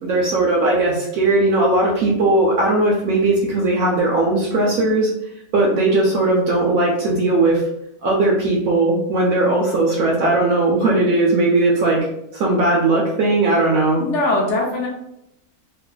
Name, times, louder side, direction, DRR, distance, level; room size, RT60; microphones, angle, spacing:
voice 1, 0.0-5.1 5.5-7.6 8.0-12.1 12.4-14.0, right 2 dB, 70° right, -3 dB, 0.9 m, -18 dB
voice 2, 14.0-14.9, left 2 dB, 60° left, -2 dB, 0.9 m, -21 dB
2.6 x 2.4 x 2.2 m, 0.82 s
omnidirectional pair, 1.6 m